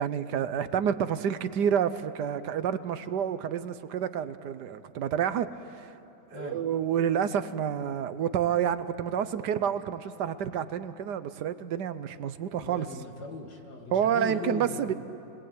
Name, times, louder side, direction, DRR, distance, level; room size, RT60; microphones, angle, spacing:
voice 1, 0.0-5.5 5.8-5.9 6.3-12.9 13.9-14.9, right 8 dB, 75° right, 13 dB, 1.4 m, -29 dB
voice 2, 6.3-6.6 12.6-15.0, left 4 dB, 65° left, 2 dB, 2.9 m, -39 dB
29.0 x 21.5 x 8.9 m, 2.9 s
omnidirectional pair, 1.9 m